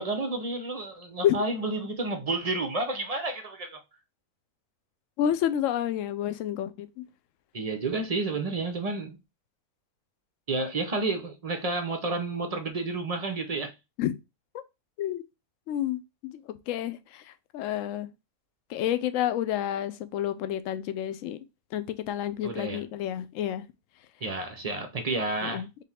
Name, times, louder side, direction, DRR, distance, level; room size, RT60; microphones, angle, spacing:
voice 1, 0.0-3.8 7.5-9.2 10.5-13.7 22.4-22.8 24.2-25.6, right 3 dB, 50° right, 0.4 m, -30 dB
voice 2, 5.2-7.0 14.0-14.1 15.0-15.2 15.7-17.2 17.5-18.1 18.7-21.4 21.7-23.6 25.4-25.8, left 11 dB, 70° left, 0.9 m, -29 dB
3.8 x 3.3 x 4.2 m
omnidirectional pair, 1.5 m